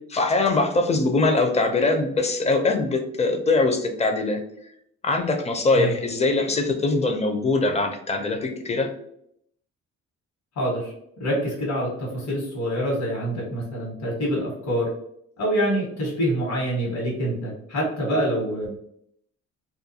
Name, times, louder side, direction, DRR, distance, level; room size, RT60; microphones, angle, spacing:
voice 1, 0.1-4.4 5.0-8.9, left 3 dB, 20° left, 5 dB, 0.4 m, -22 dB
voice 2, 10.6-10.9 11.2-14.9 15.4-18.7, equal, 60° left, -3 dB, 1.2 m, -26 dB
2.4 x 2.2 x 2.7 m, 0.72 s
cardioid pair, 90°, 30 cm